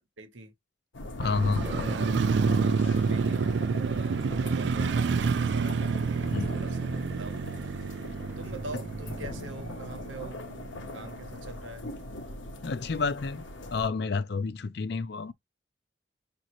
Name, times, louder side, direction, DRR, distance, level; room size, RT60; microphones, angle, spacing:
voice 1, 0.2-0.5 1.4-7.4 8.4-10.5 10.9-11.9, right 2 dB, 90° right, 1.0 m, -44 dB
sound 1, 0.9-13.9, left 2 dB, 85° left, 0.8 m, -40 dB
voice 2, 1.2-1.6 6.3-6.5 12.6-13.5 13.7-15.3, left 4 dB, 60° left, 0.5 m, -29 dB
Motorcycle, 1.2-11.3 11.7-11.8, right 5 dB, 65° right, 0.4 m, -29 dB
sound 2, 8.3-8.8 9.6-9.7, equal, 10° right, 0.7 m, -53 dB
5.1 x 2.6 x 3.0 m
head